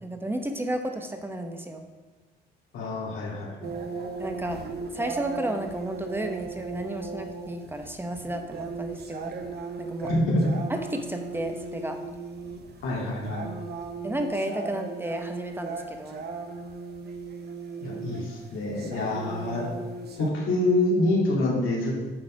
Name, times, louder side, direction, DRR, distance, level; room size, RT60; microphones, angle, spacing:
voice 1, 0.0-1.8 4.2-4.6 4.9-9.3 9.8-10.1 10.7-12.0 14.0-16.3, right 1 dB, 10° right, 5 dB, 0.9 m, -32 dB
voice 2, 2.7-3.7 10.0-10.5 12.8-13.5 17.8-19.6 20.2-22.0, left 1 dB, 80° left, -4 dB, 2.3 m, -26 dB
sound 1, 3.6-20.3, right 4 dB, 55° right, 1.0 m, -37 dB
8.7 x 4.1 x 4.9 m, 1.3 s
cardioid pair, 90°, 20 cm